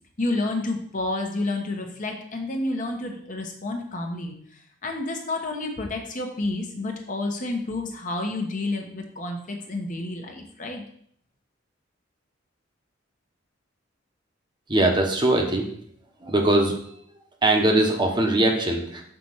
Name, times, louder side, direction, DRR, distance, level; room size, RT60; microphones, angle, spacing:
voice 1, 0.2-4.3 4.8-10.8, left 2 dB, 45° left, 2 dB, 1.1 m, -30 dB
voice 2, 14.7-15.7 16.2-16.8 17.4-19.0, right 1 dB, 25° right, 2 dB, 1.0 m, -21 dB
6.0 x 4.2 x 6.3 m, 0.64 s
head